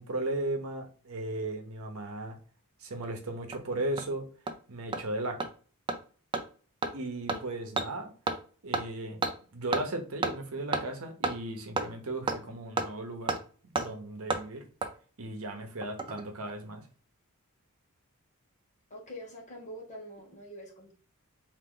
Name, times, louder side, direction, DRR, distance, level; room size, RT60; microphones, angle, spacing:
voice 1, 0.0-2.4 2.8-4.3 4.7-5.4 6.9-8.1 8.6-9.2 9.5-13.4 13.8-14.6 15.2-16.8, right 2 dB, 70° right, 4 dB, 0.9 m, -36 dB
Hammer, 3.0-3.1 3.5-3.6 4.0-4.1 4.5-4.6 4.9-5.0 5.4-5.5 5.9-6.0 6.3-6.4 6.8-6.9 7.3-7.4 7.8-7.9 8.3-8.4 8.7-8.8 9.2-9.3 9.7-9.8 10.2-10.3 10.7-10.8 11.2-11.3 11.8-11.9 12.3-12.4 12.8-12.9 13.3-13.4 13.8-13.9 14.3-14.4 14.8-14.9 15.8-16.2 16.5-16.6, right 3 dB, 20° right, 0.4 m, -30 dB
voice 2, 18.9-20.9, equal, 35° left, -2 dB, 1.4 m, -45 dB
3.9 x 2.8 x 3.8 m, 0.39 s
head